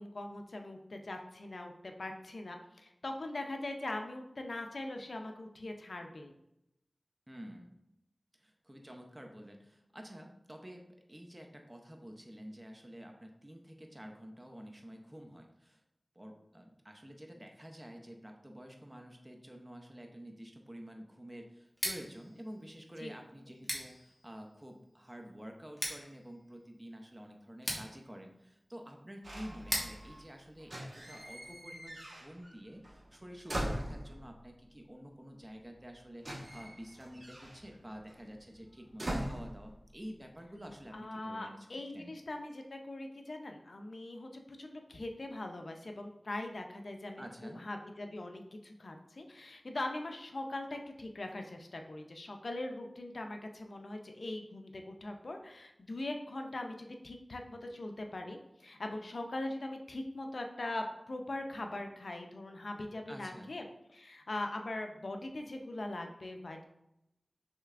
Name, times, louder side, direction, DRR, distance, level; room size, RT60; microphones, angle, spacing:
voice 1, 0.0-6.3 23.0-23.1 40.9-44.3 44.6-63.6 63.9-66.6, left 2 dB, 80° left, 4 dB, 0.5 m, -41 dB
voice 2, 7.3-7.8 8.3-15.8 16.2-41.7 41.9-42.1 47.2-47.7 63.1-63.6, equal, 20° right, 3 dB, 0.6 m, -49 dB
Scissors, 21.7-31.5, equal, 15° left, 1.3 m, -44 dB
sound 1, 29.2-30.2 30.6-32.6 32.8-34.4 35.4-35.5 35.7-40.2 40.5-40.9, right 1 dB, 75° right, 1.2 m, -42 dB
6.4 x 3.3 x 2.4 m, 0.85 s
wide cardioid pair, 60°, 0 cm